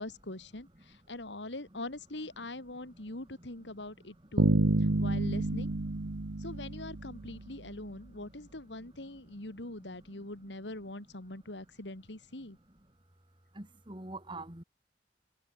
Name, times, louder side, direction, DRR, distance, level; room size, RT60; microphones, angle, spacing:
voice 1, 0.0-5.7 6.4-12.6, left 2 dB, 80° left, 2.9 m, -43 dB
Bass guitar, 4.4-7.5, right 2 dB, 85° right, 1.1 m, -29 dB
voice 2, 13.5-14.6, right 2 dB, 25° right, 3.1 m, -46 dB
head